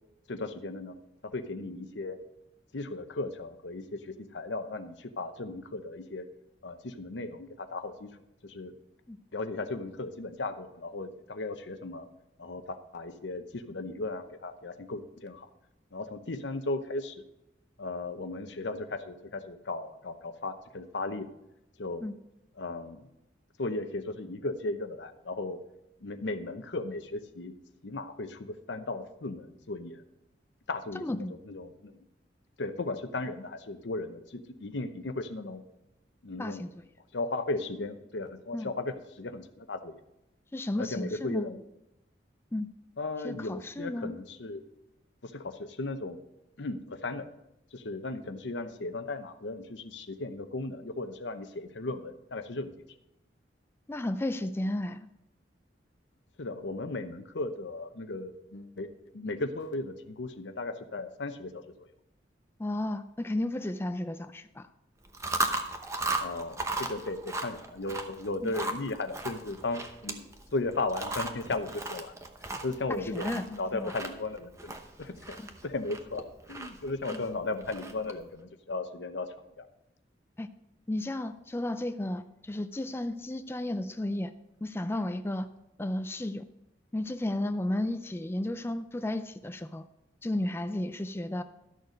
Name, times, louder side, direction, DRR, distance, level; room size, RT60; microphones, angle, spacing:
voice 1, 0.3-1.0 1.2-2.2 2.7-6.2 6.6-8.2 8.4-8.7 9.3-12.1 12.4-15.5 15.9-17.2 17.8-21.3 21.8-22.0 22.6-23.0 23.6-25.6 26.0-27.5 27.8-30.0 30.7-32.0 32.6-35.6 36.2-36.6 37.1-40.0 40.8-41.6 43.0-44.6 45.2-46.2 46.6-47.3 47.7-52.7 56.4-61.9 66.2-72.2 72.5-75.4 75.6-79.3 79.6-79.7, left 2 dB, 80° left, 9 dB, 0.8 m, -36 dB
voice 2, 30.9-31.3 36.4-36.7 38.5-38.7 40.5-41.5 42.5-42.7 43.2-44.1 53.9-55.1 62.6-64.7 68.4-68.5 72.9-73.5 73.7-73.9 77.1-77.2 80.4-80.5 80.9-84.3 84.6-85.5 85.8-86.4 86.9-89.9 90.2-91.4, left 1 dB, 15° left, 10 dB, 0.4 m, -33 dB
Chewing mastication, 65.0-78.2, right 2 dB, 15° right, 0.8 m, -37 dB
12.5 x 6.6 x 5.2 m, 0.89 s
head